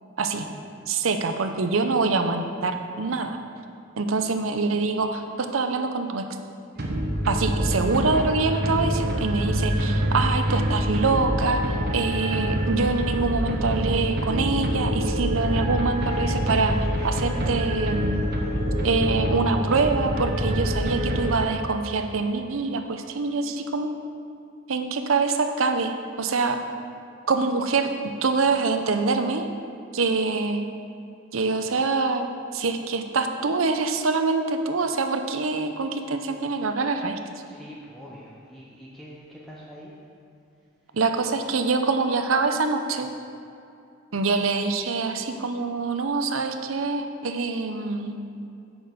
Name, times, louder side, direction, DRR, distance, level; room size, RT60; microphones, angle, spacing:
voice 1, 0.9-3.4 4.0-6.2 7.3-16.8 17.0-18.3 18.8-23.9 24.7-26.6 27.3-27.9 28.2-29.5 29.9-30.6 31.3-37.2 40.9-43.1 44.1-48.2, right 4 dB, 90° right, 6 dB, 0.7 m, -25 dB
sound 1, 6.8-21.8, equal, 55° right, 1.0 m, -26 dB
voice 2, 37.5-39.9 40.9-41.0, equal, ahead, -6 dB, 0.8 m, -44 dB
8.8 x 6.2 x 5.1 m, 2.6 s
head